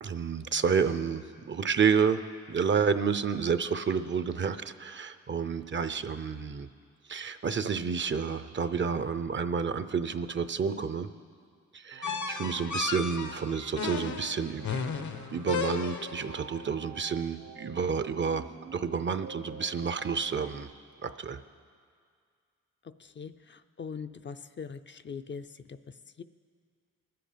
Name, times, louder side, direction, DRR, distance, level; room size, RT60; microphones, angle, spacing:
voice 1, 0.0-6.7 7.1-11.1 11.7-14.7 15.0-20.7 21.0-21.4, right 6 dB, 40° right, 12 dB, 0.6 m, -30 dB
sound 1, 11.9-20.6, right 6 dB, 65° right, 0.9 m, -49 dB
sound 2, 12.0-16.3, left 5 dB, 75° left, 0.9 m, -34 dB
voice 2, 22.8-26.2, left 6 dB, 40° left, 10 dB, 0.5 m, -42 dB
21.0 x 7.8 x 5.1 m, 2.1 s
cardioid pair, 75°, 30 cm